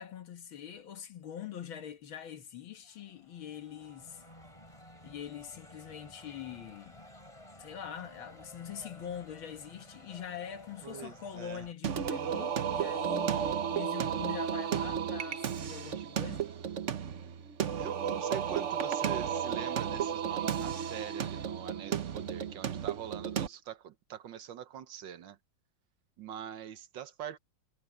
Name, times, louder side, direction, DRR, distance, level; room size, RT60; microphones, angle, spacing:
voice 1, 0.0-4.2 5.0-7.1 7.6-16.5, left 9 dB, 70° left, 2.2 m, -44 dB
sound 1, 2.8-11.7, left 1 dB, 15° left, 4.9 m, -54 dB
voice 2, 10.8-11.7 16.0-16.1 17.8-25.4 26.2-27.4, right 9 dB, 65° right, 1.5 m, -44 dB
Singing, 11.8-23.5, right 8 dB, 50° right, 0.9 m, -33 dB
omnidirectional pair, 2.3 m